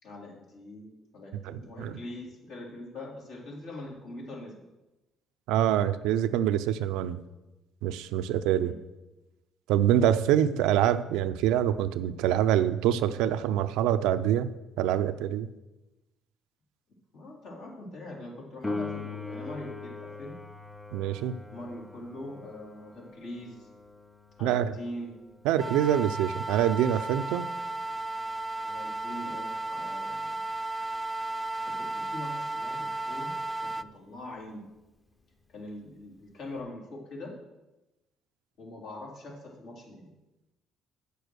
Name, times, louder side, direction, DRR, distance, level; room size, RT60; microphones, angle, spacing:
voice 1, 0.0-4.6 8.5-8.8 10.6-10.8 17.1-20.4 21.5-23.7 24.4-25.2 28.6-30.4 31.7-34.7 35.5-37.3 38.6-40.1, left 1 dB, 75° left, -3 dB, 3.4 m, -43 dB
voice 2, 1.5-2.0 5.5-7.2 7.8-8.7 9.7-14.5 14.8-15.5 20.9-21.3 24.4-24.7 25.4-27.5, right 11 dB, 85° right, 12 dB, 0.5 m, -25 dB
Piano, 18.6-29.0 36.6-36.7, left 3 dB, 10° left, 0.7 m, -42 dB
sound 1, 25.6-33.8, right 2 dB, 20° right, 0.4 m, -34 dB
8.5 x 6.8 x 6.3 m, 1.0 s
supercardioid pair, 80°, 0 cm